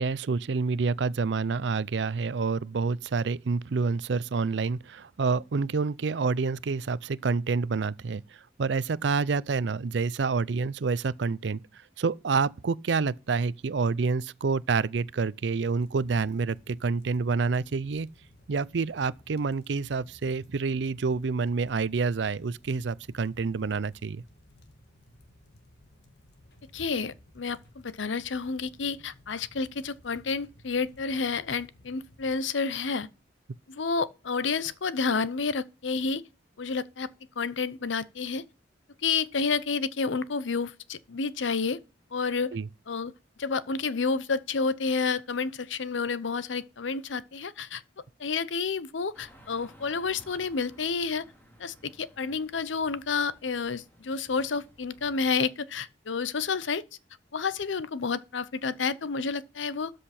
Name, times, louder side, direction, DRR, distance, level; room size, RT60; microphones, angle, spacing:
voice 1, 0.0-8.2 8.6-11.6 12.0-18.1 18.5-24.2 42.5-42.7, right 4 dB, 70° right, 0.5 m, -28 dB
sound 1, 15.7-32.4, left 1 dB, 60° left, 2.2 m, -57 dB
voice 2, 26.7-33.1 33.7-36.2 36.6-37.1 37.4-38.4 39.0-41.8 42.1-42.5 42.9-43.1 43.4-47.8 48.2-51.3 51.6-56.8 57.3-59.9, left 4 dB, 85° left, 0.7 m, -30 dB
sound 2, 49.1-55.4, equal, 10° left, 2.7 m, -56 dB
13.0 x 6.5 x 4.3 m
head